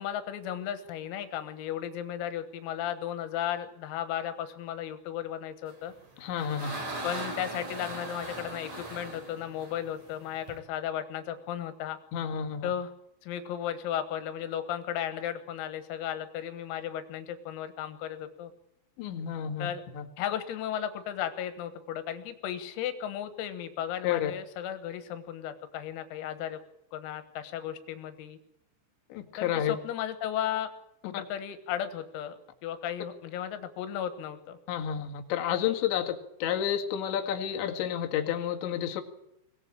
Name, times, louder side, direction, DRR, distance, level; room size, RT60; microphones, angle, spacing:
voice 1, 0.0-5.9 7.0-12.0 12.6-12.9 13.2-18.5 19.6-19.8 20.2-26.6 26.9-28.4 29.4-30.7 31.1-34.6, left 10 dB, 85° left, 10 dB, 4.1 m, -35 dB
sound 1, 5.9-10.6, right 1 dB, 35° right, 5.6 m, -39 dB
voice 2, 6.2-6.7 12.1-12.7 19.0-19.7 19.9-20.1 24.0-24.3 29.1-29.7 31.0-31.1 34.7-39.0, left 9 dB, 65° left, 3 dB, 4.0 m, -30 dB
23.5 x 18.0 x 8.7 m, 0.80 s
omnidirectional pair, 6.0 m